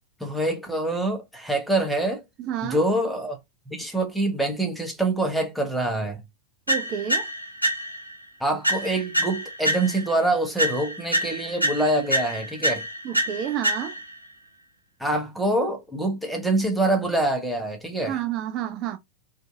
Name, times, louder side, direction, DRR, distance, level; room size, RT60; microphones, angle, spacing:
voice 1, 0.2-2.2 2.6-3.4 3.7-6.2 8.4-12.8 15.0-18.2, right 2 dB, ahead, 0.7 m, -25 dB
voice 2, 2.4-2.8 6.7-7.3 13.0-14.0 18.1-19.0, right 10 dB, 40° right, 0.3 m, -30 dB
sound 1, 6.7-8.2 8.6-10.2 10.6-14.2, right 1 dB, 90° left, 0.6 m, -27 dB
2.5 x 2.4 x 2.4 m
figure-of-eight pair, 90°, 0 cm